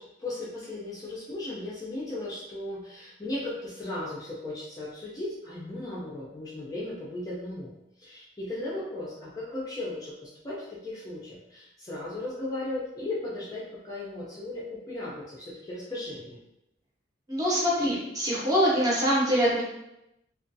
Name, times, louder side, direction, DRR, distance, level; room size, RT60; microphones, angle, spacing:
voice 1, 0.0-7.7 8.0-16.4, left 2 dB, 20° left, -6 dB, 0.4 m, -36 dB
voice 2, 17.3-19.6, equal, 20° right, -6 dB, 0.7 m, -24 dB
2.4 x 2.2 x 2.6 m, 0.87 s
head